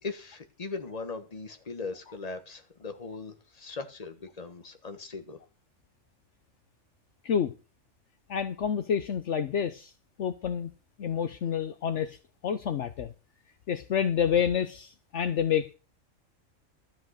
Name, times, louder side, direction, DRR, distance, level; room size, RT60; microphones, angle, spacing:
voice 1, 0.0-5.4, left 4 dB, 30° left, 1.5 m, -39 dB
voice 2, 8.3-9.9 10.2-10.7 11.0-12.2 12.4-13.1 13.7-15.7, left 8 dB, 65° left, 1.1 m, -28 dB
13.0 x 8.2 x 6.5 m
omnidirectional pair, 1.4 m